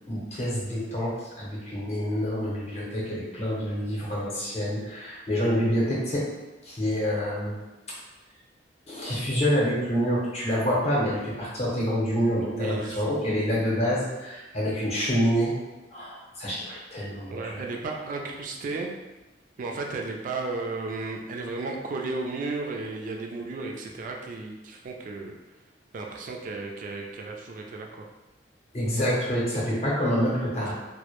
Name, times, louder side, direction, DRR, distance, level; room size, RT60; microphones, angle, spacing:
voice 1, 0.1-6.3 6.6-7.6 8.9-15.6 15.9-17.6 28.7-30.7, equal, 35° left, -5 dB, 0.7 m, -27 dB
voice 2, 12.4-13.0 17.3-18.9 19.6-25.3 25.9-28.1, right 3 dB, 45° right, 1 dB, 0.3 m, -34 dB
2.1 x 2.0 x 2.9 m, 1.1 s
head